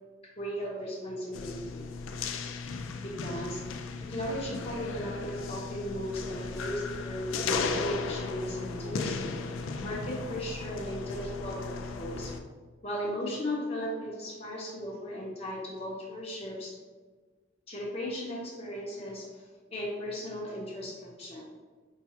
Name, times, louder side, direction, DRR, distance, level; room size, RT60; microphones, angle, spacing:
voice 1, 0.4-1.8 3.0-3.6 4.1-9.2 9.8-12.4 12.8-16.8 17.7-21.4, equal, 30° left, -3 dB, 0.8 m, -36 dB
sound 1, 1.3-12.4, left 4 dB, 80° left, 0.3 m, -36 dB
5.6 x 2.3 x 2.8 m, 1.4 s
head